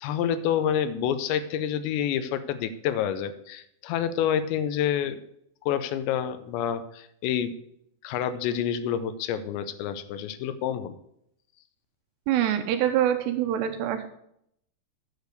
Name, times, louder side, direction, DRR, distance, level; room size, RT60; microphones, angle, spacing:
voice 1, 0.0-5.2 5.6-7.5 8.0-10.9, left 9 dB, 85° left, 11 dB, 2.8 m, -28 dB
voice 2, 12.3-14.1, right 11 dB, 80° right, 7 dB, 2.6 m, -25 dB
8.2 x 6.6 x 6.5 m, 0.73 s
omnidirectional pair, 5.2 m